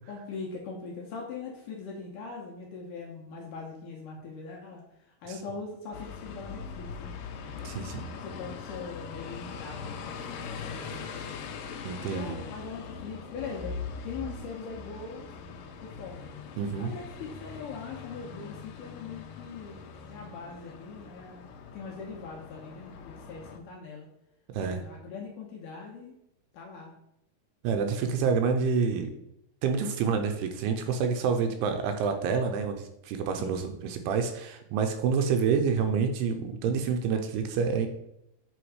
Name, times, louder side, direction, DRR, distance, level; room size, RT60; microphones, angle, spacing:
voice 1, 0.1-7.1 7.5-11.4 12.1-13.8 14.0-15.3 15.8-16.3 16.8-24.1 24.6-26.2 26.5-26.9 28.2-28.3 33.4-33.7, left 5 dB, 70° left, -1 dB, 2.0 m, -41 dB
sound 1, 5.9-23.6, left 5 dB, 90° left, 1.8 m, -41 dB
voice 2, 7.6-8.0 11.8-12.4 16.6-16.9 24.5-24.8 27.6-29.1 29.6-37.9, right 6 dB, 85° right, 6 dB, 2.6 m, -28 dB
8.0 x 3.8 x 4.8 m, 0.81 s
omnidirectional pair, 4.8 m